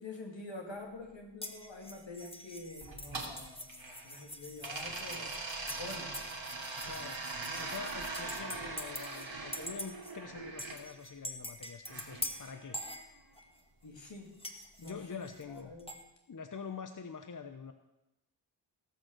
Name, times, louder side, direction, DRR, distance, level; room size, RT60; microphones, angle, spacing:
voice 1, 0.0-5.4 5.8-6.2 7.4-7.6 8.3-8.5 13.8-14.4 14.8-15.9, left 2 dB, 70° left, 1 dB, 2.6 m, -47 dB
sound 1, 1.4-9.3 9.5-10.1 10.6-13.6 14.4-16.0, left 1 dB, 10° left, 1.6 m, -45 dB
sound 2, 2.8-4.2 4.6-10.8 11.9-13.0, right 3 dB, 75° right, 2.6 m, -42 dB
voice 2, 6.8-7.3 7.5-12.8 14.8-15.7 16.3-17.7, left 5 dB, 45° left, 8 dB, 0.8 m, -45 dB
17.5 x 6.4 x 6.4 m, 0.96 s
cardioid pair, 45°, 45 cm